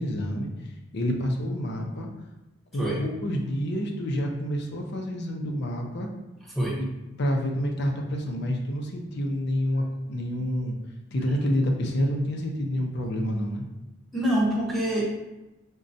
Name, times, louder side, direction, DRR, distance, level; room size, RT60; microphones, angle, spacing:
voice 1, 0.0-2.1 2.7-6.1 6.8-6.9 7.2-10.8 11.1-13.7, equal, 55° left, 2 dB, 0.5 m, -28 dB
voice 2, 14.1-15.0, right 1 dB, ahead, -6 dB, 0.7 m, -25 dB
5.0 x 2.2 x 2.6 m, 0.99 s
head